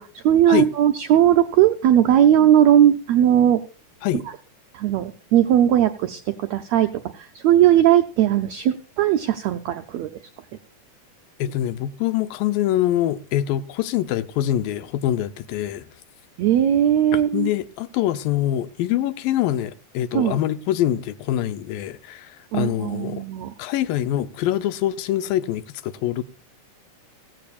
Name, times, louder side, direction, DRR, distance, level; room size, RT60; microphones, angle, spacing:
voice 1, 0.0-3.6 4.7-10.2 16.4-17.5 20.1-20.4 22.5-23.5, right 11 dB, 85° right, 1.5 m, -18 dB
voice 2, 11.4-15.9 17.1-23.2 23.6-26.3, left 12 dB, 90° left, 2.5 m, -24 dB
15.5 x 15.5 x 2.5 m
omnidirectional pair, 3.9 m